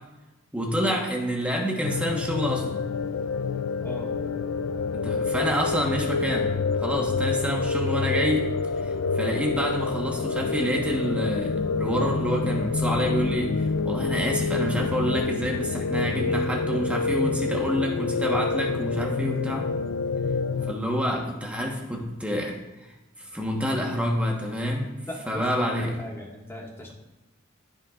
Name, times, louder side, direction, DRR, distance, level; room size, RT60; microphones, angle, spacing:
voice 1, 0.5-2.8 4.9-6.5 6.8-8.5 8.8-19.7 20.7-22.6 23.2-24.9 25.3-26.0, equal, 5° right, 0 dB, 1.2 m, -28 dB
sound 1, 1.8-20.7, left 4 dB, 70° left, 0.4 m, -27 dB
voice 2, 25.1-26.9, equal, 10° left, -2 dB, 1.7 m, -39 dB
16.0 x 5.5 x 2.5 m, 1.0 s
head